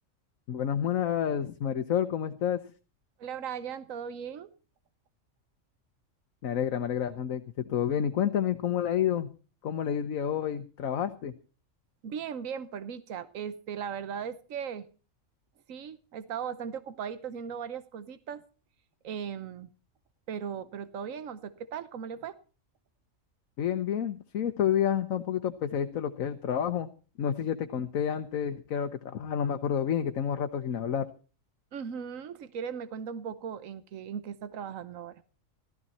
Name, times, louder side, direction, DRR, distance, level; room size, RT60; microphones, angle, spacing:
voice 1, 0.5-2.6 6.4-9.3 9.6-11.3 23.6-26.9 27.2-31.1, left 9 dB, 80° left, 8 dB, 1.4 m, -29 dB
voice 2, 3.2-4.5 12.0-14.9 15.7-18.4 19.0-19.7 20.3-22.4 31.7-35.2, right 7 dB, 80° right, 13 dB, 1.3 m, -38 dB
15.0 x 13.5 x 4.2 m, 0.36 s
omnidirectional pair, 1.4 m